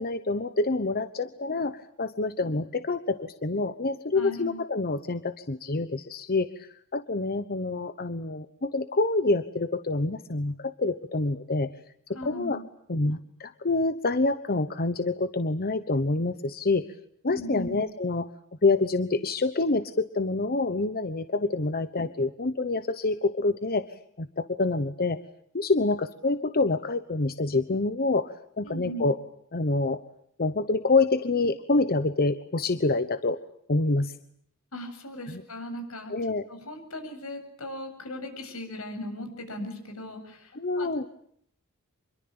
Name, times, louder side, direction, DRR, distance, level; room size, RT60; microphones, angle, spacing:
voice 1, 0.0-11.7 12.2-12.6 12.9-16.9 17.2-18.3 18.6-23.9 24.2-25.2 25.5-29.2 29.5-30.0 30.4-33.4 33.7-34.1 35.3-35.4 36.1-36.5 40.5-41.1, left 3 dB, 45° left, 11 dB, 1.1 m, -27 dB
voice 2, 4.1-4.6 12.1-12.6 17.3-17.8 28.6-29.1 34.7-36.1 36.5-41.1, left 1 dB, 75° left, 5 dB, 7.7 m, -38 dB
26.5 x 23.0 x 8.8 m, 0.67 s
head